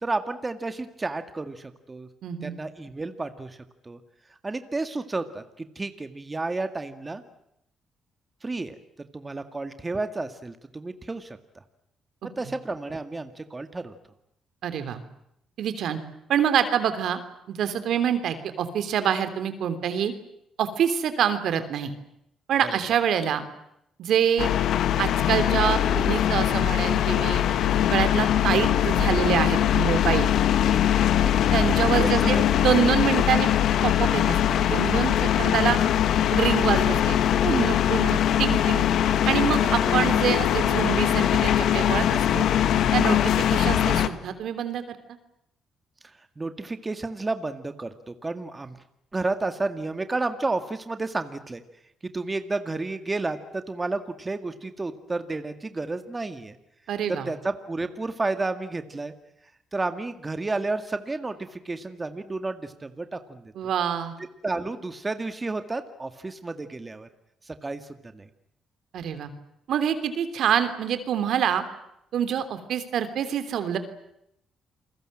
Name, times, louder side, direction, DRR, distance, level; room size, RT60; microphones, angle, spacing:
voice 1, 0.0-2.1 2.4-3.6 3.8-4.0 4.4-7.2 8.4-8.8 9.1-11.4 12.2-14.0 22.6-22.8 31.1-31.3 32.0-32.6 39.8-39.9 46.0-48.8 49.1-51.6 52.0-56.6 57.1-59.1 59.7-63.5 64.4-67.1 67.5-67.9 68.1-68.3, right 3 dB, 20° right, 9 dB, 2.0 m, -31 dB
voice 2, 2.2-2.5 14.6-15.0 15.6-16.0 16.3-17.2 17.5-20.1 20.6-21.9 22.5-23.4 24.0-24.5 25.0-27.5 27.9-30.3 31.5-32.4 32.6-33.5 33.8-35.8 36.3-37.2 37.4-38.9 39.2-42.5 42.9-45.0 56.9-57.3 63.5-64.2 68.9-69.3 69.7-71.6 72.1-73.8, right 8 dB, 70° right, 10 dB, 3.2 m, -26 dB
sound 1, 24.4-44.1, left 10 dB, 75° left, 1.8 m, -22 dB
29.0 x 22.0 x 7.7 m, 0.78 s
cardioid pair, 90°, 0 cm